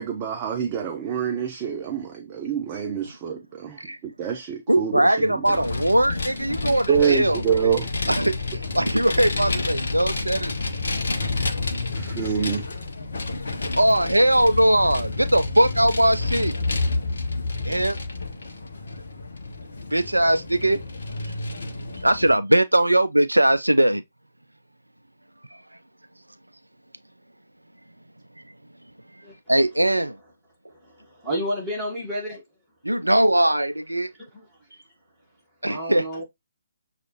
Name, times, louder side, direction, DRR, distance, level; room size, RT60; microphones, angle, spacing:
voice 1, 0.0-5.6 6.9-7.9 11.9-12.7, right 7 dB, 20° right, 0.5 m, -26 dB
voice 2, 4.7-7.7 8.1-10.5 13.7-16.6 17.6-18.0 19.9-20.8 22.0-24.0 25.5-25.6 29.5-30.2 32.8-34.1 35.6-36.1, right 1 dB, 80° right, 0.3 m, -20 dB
Vehicle, 5.4-22.4, left 3 dB, 55° left, 0.7 m, -29 dB
voice 3, 30.7-32.4 34.2-34.5 35.7-36.2, equal, 5° right, 1.5 m, -31 dB
6.4 x 2.4 x 2.8 m
figure-of-eight pair, 140°, 0 cm